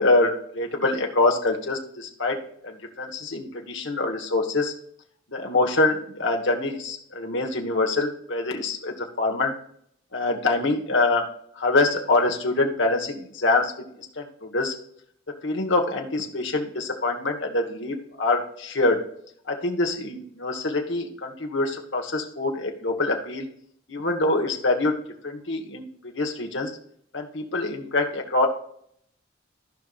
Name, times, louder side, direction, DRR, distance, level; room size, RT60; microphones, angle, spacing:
voice 1, 0.0-2.4 2.6-4.7 5.3-9.5 10.1-11.2 11.5-13.7 14.0-14.7 15.4-19.0 19.5-23.5 23.9-24.9 25.2-26.7 27.1-28.5, left 2 dB, 70° left, 2 dB, 1.5 m, -25 dB
15.0 x 5.5 x 2.5 m, 0.67 s
head